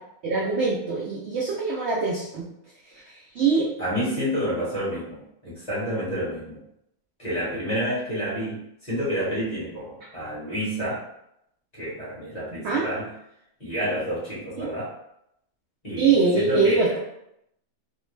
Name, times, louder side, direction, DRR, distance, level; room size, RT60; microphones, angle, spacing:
voice 1, 0.2-2.4 3.1-3.7 12.6-12.9 14.6-14.7 16.0-16.9, right 4 dB, 70° right, -4 dB, 0.6 m, -23 dB
voice 2, 3.8-6.6 7.2-11.0 11.7-13.1 13.6-14.9 15.8-17.0, equal, 30° left, -9 dB, 1.1 m, -29 dB
2.6 x 2.0 x 3.1 m, 0.79 s
omnidirectional pair, 1.6 m